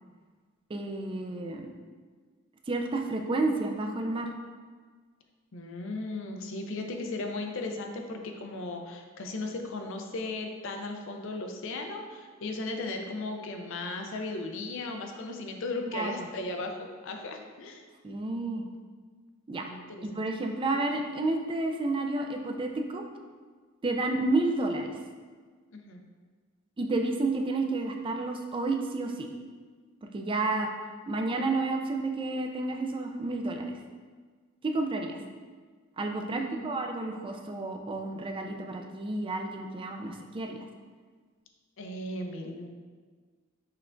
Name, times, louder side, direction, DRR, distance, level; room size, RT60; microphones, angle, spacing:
voice 1, 0.7-1.7 2.7-4.3 15.9-16.3 18.0-18.7 19.5-19.7 20.0-23.0 23.8-24.9 26.8-29.3 30.1-30.7 31.1-33.7 34.6-35.2 36.0-40.6, right 2 dB, 25° right, 3 dB, 0.4 m, -30 dB
voice 2, 5.5-17.8 19.6-20.2 25.7-26.0 36.3-36.8 41.8-42.7, left 2 dB, 65° left, 3 dB, 0.5 m, -36 dB
5.7 x 3.3 x 2.5 m, 1.5 s
head